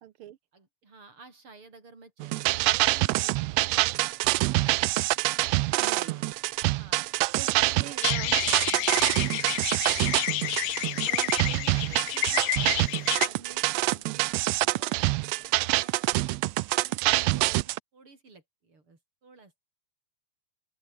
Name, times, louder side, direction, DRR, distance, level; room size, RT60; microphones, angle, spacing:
voice 1, 0.0-0.4 5.7-6.1 7.3-7.5 7.8-8.3 11.1-11.6, right 12 dB, 65° right, 1.4 m, -42 dB
voice 2, 0.5-4.3 5.6-5.7 6.0-6.3 6.7-7.1 7.4-8.4 8.9-9.6 10.9-19.5, right 3 dB, 40° right, 6.6 m, -52 dB
sound 1, 2.2-17.8, right 19 dB, 85° right, 1.5 m, -26 dB
sound 2, 8.0-13.3, left 17 dB, 90° left, 2.3 m, -30 dB
open air
omnidirectional pair, 3.6 m